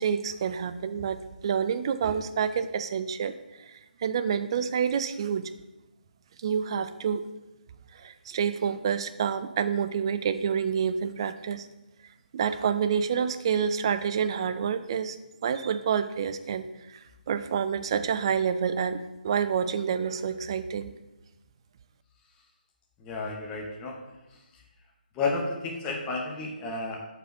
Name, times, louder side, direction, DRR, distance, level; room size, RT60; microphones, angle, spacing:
voice 1, 0.0-5.5 6.4-7.2 7.9-11.7 12.3-15.2 15.4-20.9, right 7 dB, 30° right, 11 dB, 0.4 m, -28 dB
voice 2, 23.0-24.0 25.1-27.1, left 3 dB, 15° left, 1 dB, 0.8 m, -31 dB
5.0 x 4.8 x 5.9 m, 1.0 s
figure-of-eight pair, 150°, 5 cm